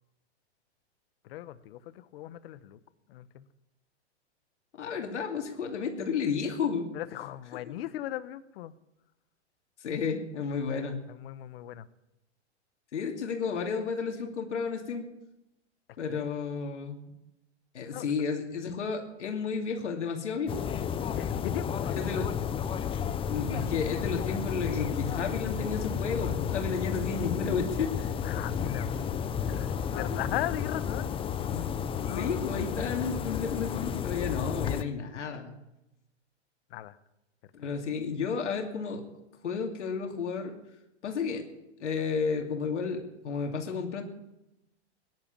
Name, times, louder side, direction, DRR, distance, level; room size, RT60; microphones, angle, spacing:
voice 1, 1.2-2.8 3.1-3.5 6.9-8.7 11.1-11.9 16.1-16.3 17.8-18.1 21.1-22.3 28.2-31.2 32.1-32.3 36.7-37.0 37.6-37.7, left 13 dB, 55° left, 14 dB, 1.1 m, -38 dB
voice 2, 4.8-6.9 7.7-7.8 9.8-11.0 12.9-15.1 16.0-17.0 17.7-20.7 22.0-22.3 23.3-28.1 30.1-30.2 31.5-31.7 32.0-35.5 37.5-39.0 39.4-40.6 41.0-41.4 41.8-44.0, left 5 dB, 85° left, 2 dB, 2.7 m, -32 dB
sound 1, 20.5-34.8, left 8 dB, 15° left, 0.6 m, -32 dB
17.5 x 11.0 x 7.3 m, 0.93 s
hypercardioid pair, 130°, 34 cm